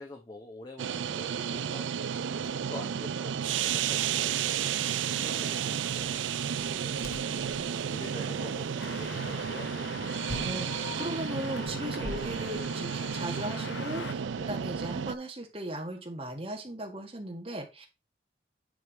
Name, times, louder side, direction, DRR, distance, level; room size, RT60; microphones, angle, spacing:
voice 1, 0.0-4.4 5.1-6.3 6.8-8.7 9.0-10.0 12.0-12.1 14.4-14.5, left 1 dB, 25° left, 1 dB, 0.9 m, -46 dB
sound 1, 0.8-15.2, right 8 dB, 90° right, 0.4 m, -32 dB
sound 2, 5.9-13.2, left 1 dB, 50° left, 0.9 m, -47 dB
sound 3, 8.8-14.1, left 5 dB, 75° left, 0.7 m, -43 dB
voice 2, 10.4-17.9, right 1 dB, 30° right, 1 dB, 1.7 m, -37 dB
9.7 x 3.4 x 4.5 m, 0.27 s
head